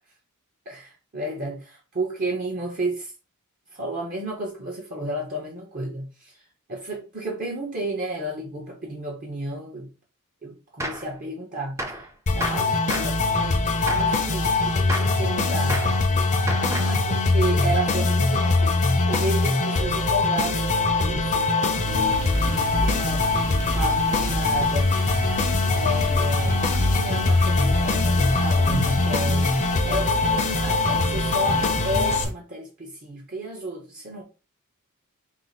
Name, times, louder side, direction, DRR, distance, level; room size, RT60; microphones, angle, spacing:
voice 1, 0.7-3.1 3.7-6.4 6.7-9.9 10.4-12.0 12.3-16.0 16.7-18.8 19.1-21.5 21.9-24.9 25.7-26.6 26.9-34.2, right 1 dB, 40° right, 0.9 m, -32 dB
Gunshot gunfire, 10.8-11.1 11.8-12.1 12.4-13.2 13.9-14.2 14.9-15.2 15.7-16.0 16.5-17.0, right 1 dB, 15° right, 0.5 m, -31 dB
sound 1, 12.3-32.2, left 3 dB, 35° left, 0.6 m, -22 dB
sound 2, 21.8-32.3, equal, 90° right, 1.0 m, -30 dB
4.7 x 2.0 x 4.0 m
head